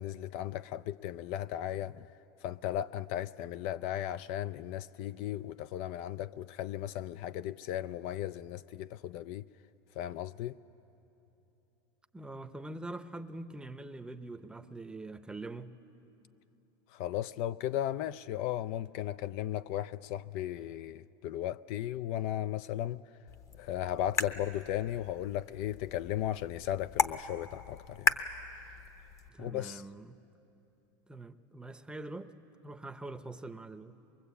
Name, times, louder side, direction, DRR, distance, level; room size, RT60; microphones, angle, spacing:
voice 1, 0.0-2.1 2.4-9.4 10.0-10.6 16.9-23.0 23.6-28.2 29.4-29.8, left 12 dB, 60° left, 0.5 m, -36 dB
voice 2, 12.1-15.7 29.3-30.2 31.1-32.3 32.6-33.9, right 2 dB, 10° right, 0.8 m, -44 dB
sound 1, 23.3-29.3, left 5 dB, 25° left, 0.9 m, -36 dB
23.0 x 22.5 x 8.4 m
supercardioid pair, 120°, 12 cm